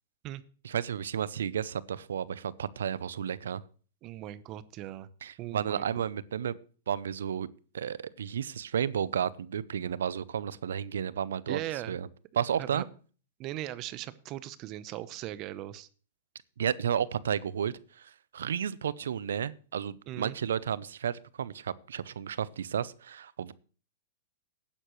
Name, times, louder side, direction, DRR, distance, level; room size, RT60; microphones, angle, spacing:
voice 1, 0.6-3.6 5.2-6.5 6.9-7.5 7.7-11.6 11.9-12.1 12.4-12.8 16.6-23.5, right 8 dB, 80° right, 20 dB, 0.6 m, -32 dB
voice 2, 4.0-5.1 5.4-5.9 11.5-12.0 12.6-12.9 13.4-15.9 20.1-20.4, right 14 dB, 40° right, 16 dB, 0.8 m, -39 dB
16.0 x 9.9 x 3.1 m, 0.40 s
hypercardioid pair, 120°, 0 cm